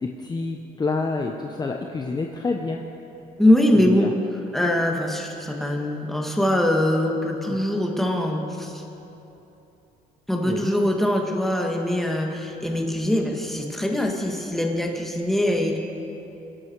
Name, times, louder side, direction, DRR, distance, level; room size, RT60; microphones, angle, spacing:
voice 1, 0.0-2.8 3.7-4.1 7.5-7.6 10.4-10.7, left 3 dB, 25° left, 2 dB, 1.0 m, -28 dB
voice 2, 3.4-4.1 4.5-8.8 10.3-15.8, left 1 dB, ahead, 1 dB, 1.9 m, -22 dB
25.5 x 11.0 x 4.7 m, 2.9 s
cardioid pair, 110°, 17 cm